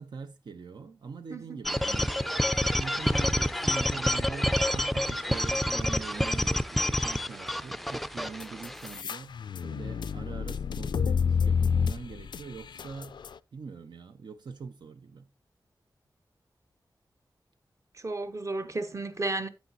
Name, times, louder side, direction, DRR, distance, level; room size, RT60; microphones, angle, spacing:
voice 1, 0.0-2.2 2.5-13.2 13.5-15.3, right 5 dB, 75° right, 0.6 m, -42 dB
sound 1, 1.7-9.0, equal, ahead, 0.4 m, -28 dB
sound 2, 8.4-13.3, left 6 dB, 80° left, 0.4 m, -29 dB
voice 2, 17.9-19.5, right 2 dB, 40° right, 1.0 m, -33 dB
9.9 x 8.2 x 2.6 m
wide cardioid pair, 75°, 8 cm